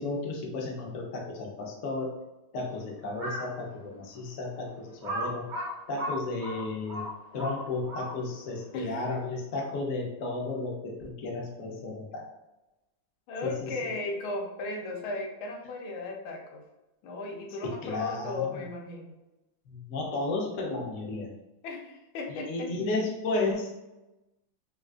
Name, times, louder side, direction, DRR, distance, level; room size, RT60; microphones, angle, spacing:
voice 1, 0.0-2.1 2.5-5.5 5.9-7.0 7.3-12.2 13.4-13.7 17.6-18.6 19.7-21.3 22.5-23.7, left 3 dB, 70° left, -1 dB, 0.7 m, -33 dB
Crow, 3.1-3.6 4.1-4.2 5.0-8.4, equal, 45° right, 0.5 m, -35 dB
voice 2, 8.7-9.1 13.3-16.6 17.0-19.2 21.6-22.8, left 3 dB, 90° left, 2 dB, 1.4 m, -36 dB
3.5 x 2.4 x 2.3 m, 1.0 s
omnidirectional pair, 2.2 m